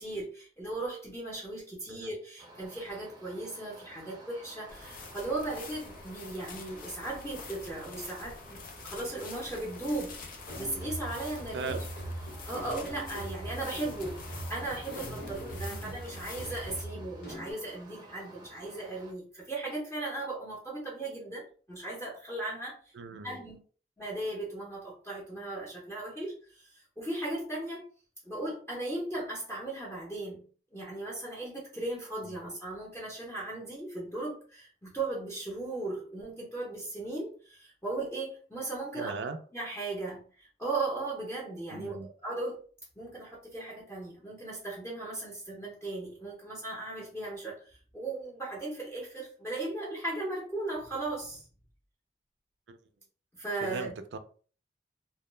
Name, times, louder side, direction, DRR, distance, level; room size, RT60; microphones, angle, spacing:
voice 1, 0.0-10.2 10.6-11.8 12.5-14.2 14.5-23.6 24.0-27.8 28.2-30.4 30.7-39.2 39.5-42.6 43.0-51.4 53.3-53.9, right 2 dB, 10° left, 0.7 m, -37 dB
sound 1, 2.4-19.1, right 2 dB, 25° right, 0.6 m, -53 dB
sound 2, 4.7-16.8, left 4 dB, 50° left, 0.5 m, -46 dB
sound 3, 10.5-17.5, right 1 dB, 75° left, 1.1 m, -41 dB
voice 2, 11.5-11.8 15.6-15.9 23.0-23.4 32.2-32.4 39.0-39.4 41.7-42.1 52.7-52.8 53.6-54.2, right 4 dB, 80° right, 0.4 m, -38 dB
2.2 x 2.1 x 3.1 m
head